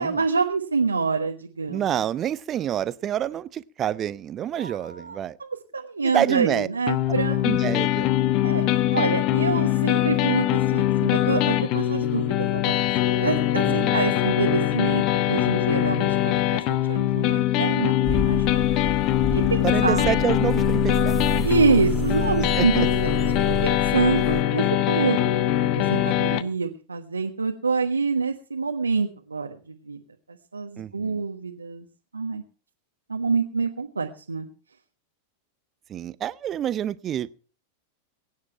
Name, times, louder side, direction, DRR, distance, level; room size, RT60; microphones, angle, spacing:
voice 1, 0.0-2.0 4.5-7.5 8.4-12.8 13.2-18.8 19.3-20.1 21.4-23.2 23.4-25.4 25.8-30.0 30.5-31.8 32.1-32.4 33.1-34.5, right 4 dB, 80° right, 1.3 m, -26 dB
voice 2, 1.7-5.4 6.0-6.7 7.4-8.1 13.6-14.0 19.6-21.1 22.6-22.9 30.8-31.2 35.9-37.3, right 10 dB, 30° right, 0.7 m, -27 dB
sound 1, 6.9-26.4, left 13 dB, 40° left, 1.0 m, -22 dB
sound 2, 18.0-24.4, right 3 dB, 5° left, 1.9 m, -30 dB
22.5 x 9.7 x 4.5 m
figure-of-eight pair, 90°, 0 cm